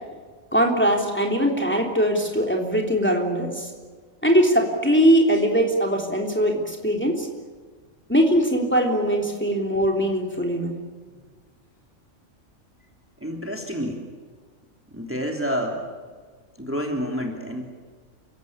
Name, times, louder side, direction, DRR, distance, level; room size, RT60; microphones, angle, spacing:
voice 1, 0.5-3.7 4.2-7.3 8.1-10.8, equal, 10° left, 0 dB, 3.3 m, -21 dB
voice 2, 13.2-14.0 14.9-15.9 16.6-17.6, equal, 10° right, 1 dB, 3.1 m, -28 dB
29.5 x 16.5 x 8.8 m, 1.5 s
omnidirectional pair, 1.4 m